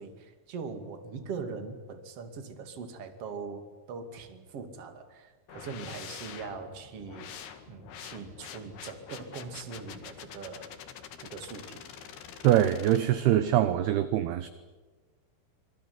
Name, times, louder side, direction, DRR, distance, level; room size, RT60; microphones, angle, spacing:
voice 1, 0.0-7.3 7.7-10.7 11.2-11.8, right 5 dB, 40° right, 8 dB, 2.8 m, -41 dB
sound 1, 5.5-13.0, left 8 dB, 60° left, 3.6 m, -46 dB
voice 2, 12.4-14.5, right 12 dB, 70° right, 12 dB, 2.6 m, -23 dB
26.5 x 22.0 x 9.6 m, 1.3 s
omnidirectional pair, 5.4 m